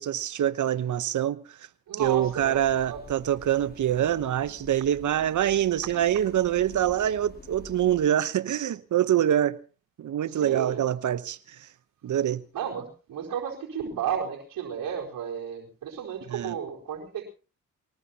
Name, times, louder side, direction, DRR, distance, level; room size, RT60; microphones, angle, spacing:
voice 1, 0.0-1.6 2.0-9.6 10.0-11.7 12.0-12.4 16.3-16.5, right 11 dB, 60° right, 1.0 m, -25 dB
voice 2, 1.9-2.6 2.9-3.0 5.8-5.9 10.3-10.9 12.5-17.2, right 8 dB, 75° right, 4.4 m, -33 dB
sound 1, 2.0-8.1, left 3 dB, 25° left, 2.2 m, -48 dB
23.0 x 19.5 x 2.9 m
supercardioid pair, 50°, 34 cm